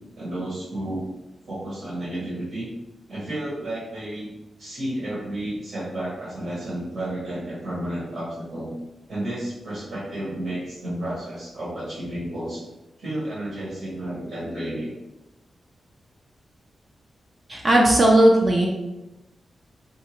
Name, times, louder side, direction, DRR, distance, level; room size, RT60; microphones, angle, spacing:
voice 1, 0.2-1.1 1.4-2.7 3.1-4.3 4.6-8.7 9.1-12.6 13.0-14.9, right 1 dB, 75° right, -8 dB, 1.4 m, -31 dB
voice 2, 17.5-18.7, right 1 dB, 40° right, -2 dB, 0.5 m, -16 dB
3.3 x 2.8 x 3.0 m, 1.0 s
wide cardioid pair, 115°, 0 cm